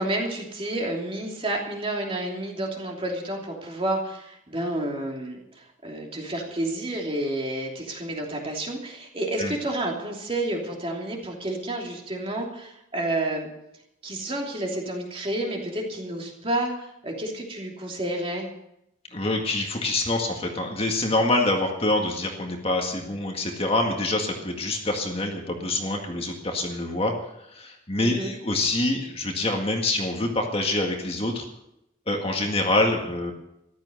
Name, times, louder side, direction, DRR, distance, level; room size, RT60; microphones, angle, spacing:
voice 1, 0.0-13.5 14.0-16.7 17.0-18.5 28.0-28.3, right 1 dB, 30° right, 0 dB, 3.0 m, -30 dB
voice 2, 19.1-27.1 27.5-31.5 32.1-33.3, left 2 dB, 30° left, 2 dB, 1.9 m, -26 dB
14.5 x 12.5 x 6.6 m, 0.83 s
head